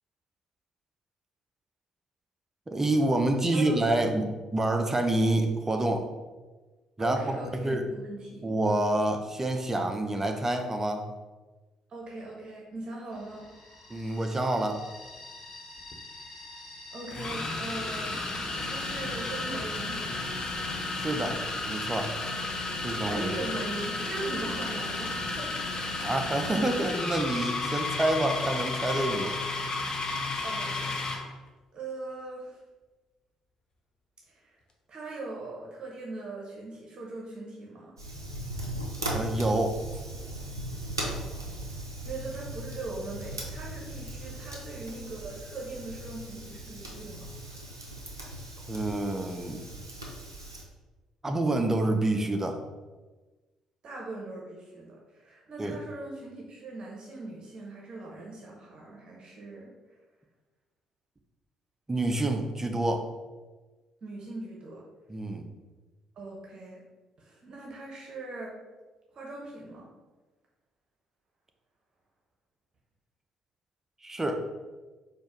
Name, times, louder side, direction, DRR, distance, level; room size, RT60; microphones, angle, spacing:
voice 1, 2.7-6.1 7.0-7.8 8.4-11.0 13.9-14.8 20.9-21.4 21.7-22.1 22.8-23.3 26.0-29.3 39.1-39.8 48.7-49.6 51.2-52.6 55.6-55.8 61.9-63.0 65.1-65.5 74.0-74.5, right 1 dB, 20° right, 5 dB, 0.6 m, -27 dB
voice 2, 3.5-3.9 7.0-8.4 11.9-13.5 16.9-18.2 18.6-20.2 23.0-25.5 30.4-31.0 31.7-32.6 34.3-34.6 34.9-37.9 42.0-47.3 53.8-59.7 64.0-64.8 66.2-66.8 67.2-68.6 69.1-69.9, right 2 dB, 45° right, -2 dB, 0.9 m, -40 dB
sound 1, 13.1-19.4, left 1 dB, 80° left, 0.9 m, -47 dB
sound 2, 15.8-15.9 17.1-31.3, left 3 dB, 40° left, 0.7 m, -33 dB
Fire, 38.0-50.6, right 1 dB, 90° right, 0.5 m, -38 dB
4.4 x 2.5 x 4.5 m, 1.2 s
figure-of-eight pair, 45°, 2 cm